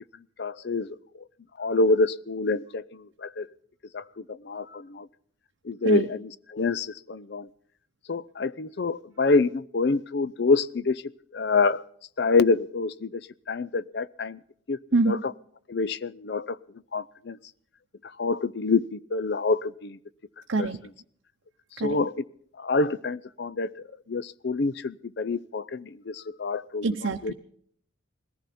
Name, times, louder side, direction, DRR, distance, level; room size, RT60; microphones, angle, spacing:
voice 1, 0.4-0.9 1.6-3.5 3.9-4.0 4.3-5.1 5.7-6.2 6.5-7.5 8.1-11.0 11.3-11.8 12.2-13.2 13.5-14.4 14.7-14.8 15.1-15.2 15.7-16.6 16.9-17.4 18.2-20.0 20.6-20.7 21.8-22.1 22.6-23.7 24.1-26.9 27.2-27.3, left 3 dB, 60° left, 16 dB, 0.5 m, -26 dB
voice 2, 14.9-15.2 20.5-20.8 21.8-22.0 26.8-27.3, right 3 dB, 85° right, 3 dB, 0.8 m, -25 dB
20.5 x 14.5 x 4.3 m, 0.63 s
head